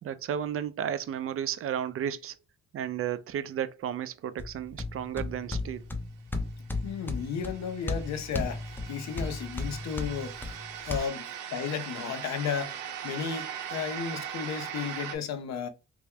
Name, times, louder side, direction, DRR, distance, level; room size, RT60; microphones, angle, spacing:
voice 1, 0.0-2.4 2.7-5.9 11.0-11.1, right 9 dB, 50° right, 0.4 m, -33 dB
sound 1, 4.4-11.0, left 2 dB, 5° left, 0.5 m, -35 dB
sound 2, 6.7-15.2, right 9 dB, 90° right, 0.7 m, -40 dB
voice 2, 6.8-10.5 10.8-12.8 13.0-15.7, left 7 dB, 60° left, 0.7 m, -34 dB
3.0 x 2.2 x 3.4 m
cardioid pair, 90°, 30 cm